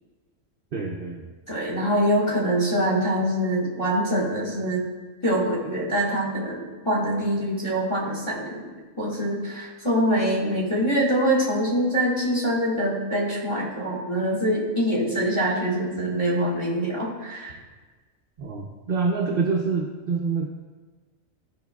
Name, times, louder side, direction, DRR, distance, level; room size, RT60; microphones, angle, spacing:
voice 1, 0.7-1.3 18.4-20.5, right 4 dB, 50° right, 0 dB, 0.7 m, -26 dB
voice 2, 1.5-4.8 5.2-8.6 9.0-17.6, equal, 20° left, -4 dB, 1.9 m, -24 dB
13.0 x 5.4 x 2.3 m, 1.3 s
omnidirectional pair, 1.4 m